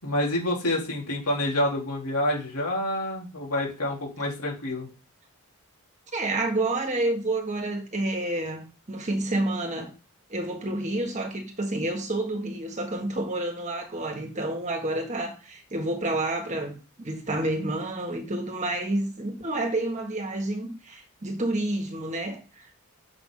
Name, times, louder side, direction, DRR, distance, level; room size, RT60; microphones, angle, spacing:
voice 1, 0.0-4.9, left 1 dB, 85° left, 3.6 m, -28 dB
voice 2, 6.1-9.9 10.3-22.9, right 2 dB, 30° right, 1.6 m, -29 dB
6.9 x 5.9 x 3.9 m
head